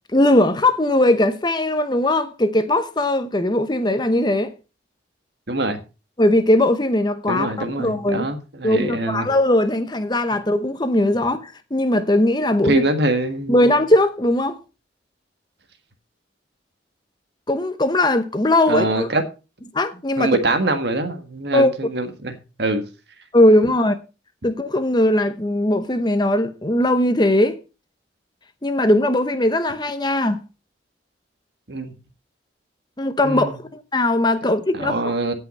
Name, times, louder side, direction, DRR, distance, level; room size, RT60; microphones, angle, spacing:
voice 1, 0.1-4.5 6.2-7.5 7.8-8.3 8.6-12.8 13.5-14.6 17.5-19.1 19.7-20.4 21.5-21.7 23.3-24.0 24.4-27.6 28.6-30.4 33.0-35.1, left 1 dB, 25° left, 0.9 m, -19 dB
voice 2, 5.5-5.8 7.3-9.3 12.6-13.6 18.7-19.2 20.2-22.8 31.7-31.9 33.2-33.6 34.7-35.3, right 2 dB, 65° right, 1.6 m, -23 dB
16.5 x 5.7 x 4.2 m
head